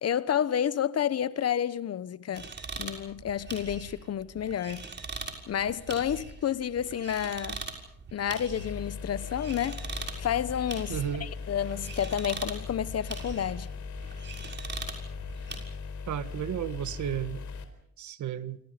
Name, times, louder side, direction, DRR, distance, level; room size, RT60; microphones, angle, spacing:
voice 1, 0.0-2.5 2.8-4.9 5.5-7.6 8.1-9.8 10.2-13.7, left 9 dB, 55° left, 1.2 m, -30 dB
sound 1, 2.3-15.6, right 4 dB, 35° right, 6.3 m, -42 dB
sound 2, 8.6-17.6, left 5 dB, 75° left, 4.4 m, -39 dB
voice 2, 10.9-11.3 16.1-17.4 18.0-18.6, right 10 dB, 70° right, 1.7 m, -33 dB
28.5 x 27.0 x 5.2 m
cardioid pair, 90°, 30 cm